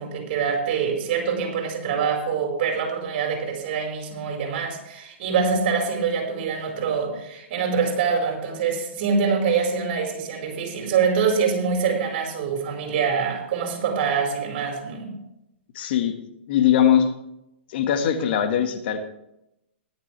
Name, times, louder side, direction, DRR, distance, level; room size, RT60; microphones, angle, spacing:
voice 1, 0.0-15.2, right 6 dB, 50° right, 2 dB, 4.7 m, -25 dB
voice 2, 15.7-16.1 16.5-17.1 17.7-19.1, left 9 dB, 55° left, 6 dB, 1.7 m, -21 dB
17.0 x 11.5 x 3.4 m, 0.84 s
hypercardioid pair, 120°, 7 cm